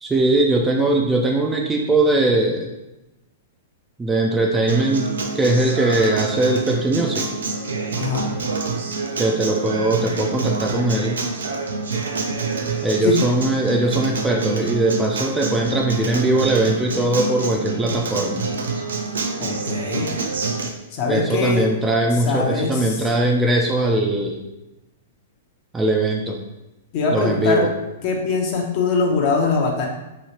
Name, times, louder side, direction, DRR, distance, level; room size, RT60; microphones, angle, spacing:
voice 1, 0.0-2.7 4.0-7.3 9.2-11.2 12.8-18.4 21.1-24.4 25.7-26.4 27.1-27.7, right 2 dB, 10° right, 0 dB, 0.3 m, -20 dB
Acoustic guitar, 4.7-20.7, right 4 dB, 85° right, 0.4 m, -27 dB
voice 2, 19.4-20.1 20.9-21.6 22.2-23.1 26.9-27.7 28.0-29.9, left 4 dB, 45° left, 0 dB, 0.7 m, -22 dB
3.0 x 2.8 x 2.8 m, 0.97 s
hypercardioid pair, 125°, 0 cm